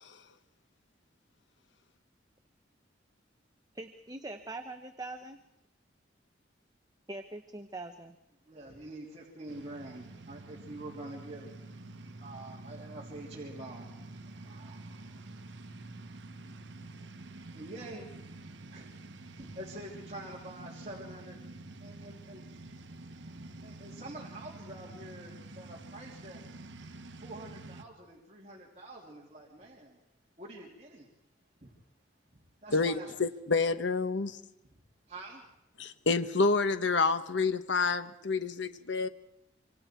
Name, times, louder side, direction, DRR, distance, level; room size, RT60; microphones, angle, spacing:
voice 1, 3.7-5.4 7.1-8.2, right 2 dB, 20° right, 6 dB, 1.0 m, -42 dB
voice 2, 8.5-11.9 12.2-21.4 21.8-22.4 23.2-26.4 26.8-26.9 27.2-30.0 30.4-31.1 31.6-31.7 32.3-33.1 35.1-35.5, right 1 dB, 35° right, -3 dB, 3.0 m, -47 dB
sound 1, 9.5-27.8, right 2 dB, 75° right, 1.1 m, -48 dB
voice 3, 32.7-34.4 35.8-39.1, left 4 dB, 80° left, 10 dB, 1.1 m, -28 dB
26.5 x 25.0 x 4.5 m, 0.80 s
head